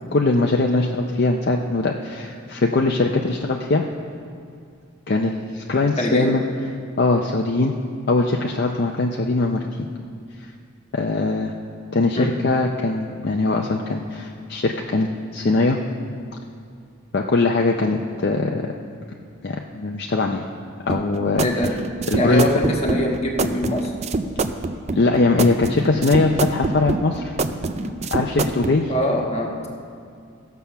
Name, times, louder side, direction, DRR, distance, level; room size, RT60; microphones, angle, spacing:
voice 1, 0.1-3.8 5.1-6.4 7.0-7.7 8.1-9.6 10.9-11.5 11.9-15.8 17.1-18.7 19.4-20.5 20.9-21.5 22.1-22.4 24.9-27.4 27.8-28.9, left 3 dB, 50° left, 1 dB, 0.5 m, -21 dB
voice 2, 6.0-6.3 12.1-12.3 21.4-21.7 22.1-23.9 28.9-29.6, equal, 30° left, 0 dB, 1.3 m, -23 dB
sound 1, 20.9-28.8, right 3 dB, 30° right, 0.4 m, -25 dB
16.0 x 7.0 x 5.7 m, 2.3 s
head